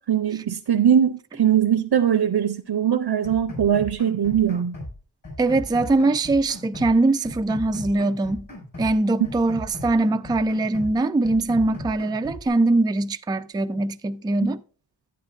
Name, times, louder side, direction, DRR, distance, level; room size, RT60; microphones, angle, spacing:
voice 1, 0.1-4.8, right 9 dB, 60° right, 0.7 m, -21 dB
sound 1, 3.2-5.0 5.2-7.0 7.2-9.0 9.2-11.0 11.2-12.5, left 1 dB, 45° left, 5.7 m, -38 dB
voice 2, 5.4-8.5 8.8-14.6, right 2 dB, 10° right, 0.3 m, -22 dB
11.0 x 9.1 x 2.5 m
wide cardioid pair, 85°, 45 cm